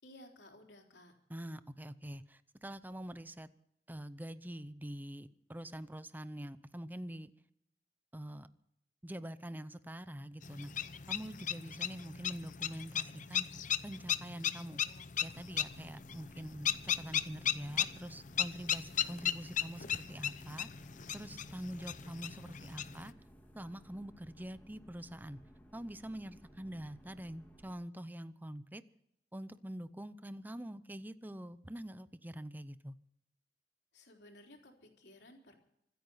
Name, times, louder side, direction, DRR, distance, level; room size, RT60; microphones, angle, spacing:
voice 1, 0.0-1.1 33.9-35.5, left 1 dB, 75° left, 2 dB, 3.8 m, -57 dB
voice 2, 1.3-3.5 3.9-7.3 8.1-8.5 9.0-13.5 13.8-14.8 15.2-20.7 21.1-23.1 23.6-25.4 25.7-28.8 29.3-33.0, right 1 dB, 10° right, 13 dB, 0.7 m, -45 dB
sound 1, 10.4-23.1, left 9 dB, 45° left, 0.7 m, -37 dB
sound 2, 15.3-27.7, equal, 10° left, 2.1 m, -59 dB
25.5 x 9.1 x 5.6 m, 0.80 s
head